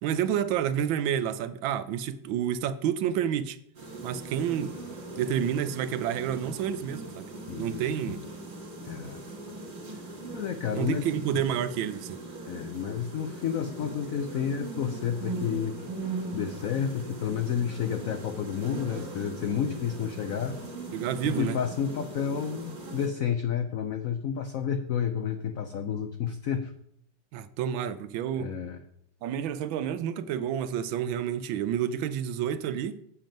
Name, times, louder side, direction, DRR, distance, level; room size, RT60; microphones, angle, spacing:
voice 1, 0.0-3.6 4.0-4.8 5.2-7.3 7.6-8.2 10.7-12.2 20.9-21.6 27.3-28.5 29.2-33.0, right 9 dB, 80° right, 1.3 m, -29 dB
sound 1, 3.7-23.1, right 2 dB, 30° right, 1.3 m, -40 dB
voice 2, 7.5-7.8 8.8-9.2 10.3-11.1 12.5-15.8 16.3-20.6 21.2-26.7 28.4-28.8, left 8 dB, 85° left, 0.7 m, -30 dB
7.5 x 7.2 x 5.2 m
omnidirectional pair, 2.2 m